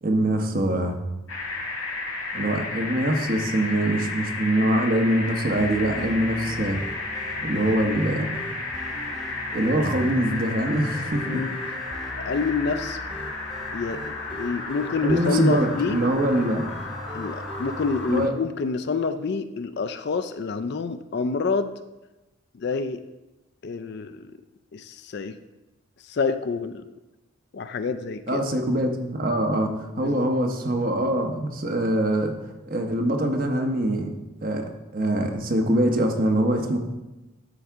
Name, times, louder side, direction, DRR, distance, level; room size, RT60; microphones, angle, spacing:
voice 1, 0.0-1.0 2.3-6.8 7.4-8.3 9.5-11.4 15.0-16.6 18.1-18.3 28.3-32.3 32.7-34.1 34.4-36.8, right 1 dB, 40° right, 4 dB, 0.8 m, -23 dB
sound 1, 1.3-18.2, left 3 dB, 75° left, 1.7 m, -33 dB
sound 2, 5.6-18.3, right 1 dB, ahead, 0.8 m, -39 dB
voice 2, 12.2-13.0 13.7-16.0 17.1-21.7 22.5-23.0 23.6-24.3 24.7-25.4 26.1-26.9 27.5-28.4 30.0-30.3, left 4 dB, 50° left, 11 dB, 0.3 m, -27 dB
12.0 x 4.7 x 3.5 m, 1.0 s
head